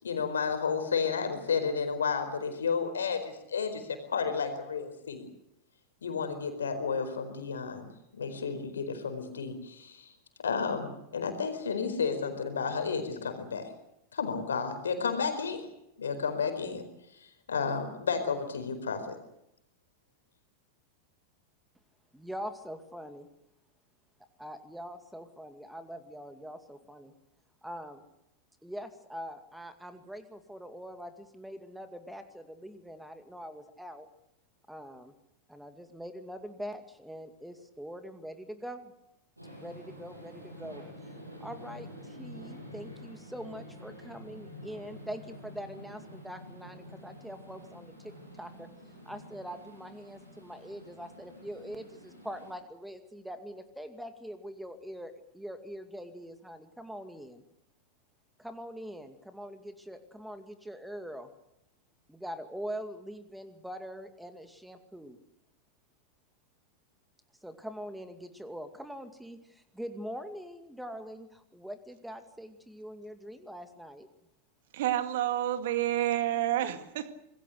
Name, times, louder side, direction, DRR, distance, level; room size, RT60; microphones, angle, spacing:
voice 1, 0.0-5.3 6.0-10.1 10.4-13.7 14.1-15.6 16.0-16.8 17.2-19.2, left 5 dB, 70° left, 8 dB, 4.6 m, -32 dB
voice 2, 22.1-23.3 24.4-27.1 27.6-28.0 28.6-34.1 34.7-35.1 35.5-38.9 39.5-40.9 41.4-48.1 48.4-48.7 49.1-57.4 58.4-61.3 62.1-65.2 67.4-74.1, equal, ahead, 8 dB, 2.3 m, -43 dB
sound 1, 39.4-52.5, equal, 85° right, 8.0 m, -48 dB
voice 3, 74.7-77.1, right 13 dB, 55° right, 9 dB, 2.1 m, -29 dB
26.5 x 21.5 x 6.6 m, 0.81 s
figure-of-eight pair, 90°, 0 cm